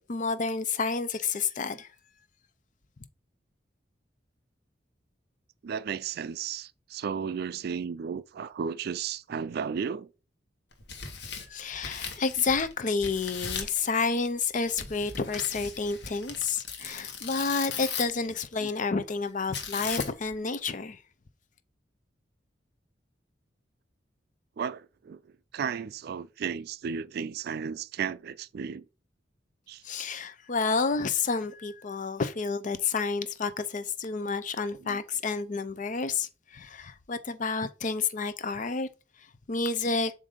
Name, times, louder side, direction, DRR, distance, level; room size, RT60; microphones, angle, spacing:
voice 1, 0.1-1.9 11.5-21.0 29.8-38.9 39.5-40.1, left 4 dB, 45° left, 0.6 m, -30 dB
voice 2, 5.6-10.1 18.6-18.7 24.6-25.2 25.5-28.9 29.7-29.8 34.8-35.0, right 7 dB, 60° right, 0.3 m, -34 dB
Tearing, 10.7-12.7 13.0-13.8 14.8-18.3 19.5-20.3, left 6 dB, 65° left, 1.1 m, -37 dB
7.3 x 2.6 x 5.0 m
head